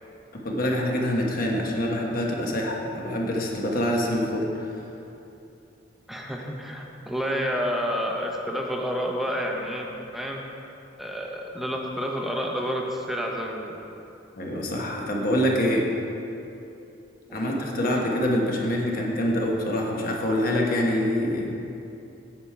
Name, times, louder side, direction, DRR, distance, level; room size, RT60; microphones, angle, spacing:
voice 1, 0.4-4.7 14.4-15.8 17.3-21.5, left 1 dB, 45° left, -1 dB, 1.2 m, -25 dB
voice 2, 6.1-9.9 10.1-10.4 11.0-13.8 17.3-17.5, equal, ahead, 0 dB, 0.8 m, -29 dB
9.3 x 7.2 x 4.7 m, 2.8 s
head